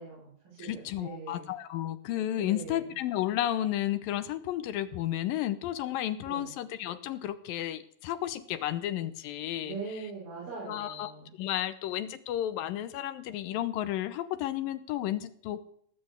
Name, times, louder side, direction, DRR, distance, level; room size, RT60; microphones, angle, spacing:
voice 1, 0.0-1.5 2.4-2.9 6.2-6.5 9.6-11.3, right 4 dB, 75° right, -6 dB, 7.1 m, -42 dB
voice 2, 0.6-10.1 10.7-15.6, left 12 dB, 75° left, 12 dB, 2.5 m, -32 dB
18.5 x 7.7 x 8.1 m, 0.65 s
omnidirectional pair, 4.2 m